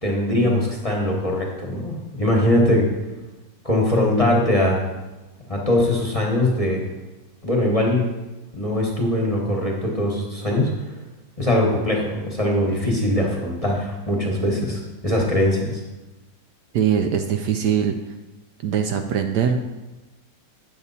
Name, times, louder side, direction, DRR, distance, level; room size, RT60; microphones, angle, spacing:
voice 1, 0.0-2.9 3.6-4.8 5.5-6.8 7.4-8.0 8.6-10.9 11.4-15.8, left 1 dB, 20° left, -2 dB, 1.1 m, -21 dB
voice 2, 16.7-18.0 18.6-19.6, right 8 dB, 70° right, 6 dB, 1.1 m, -21 dB
9.6 x 6.9 x 4.1 m, 1.1 s
omnidirectional pair, 2.0 m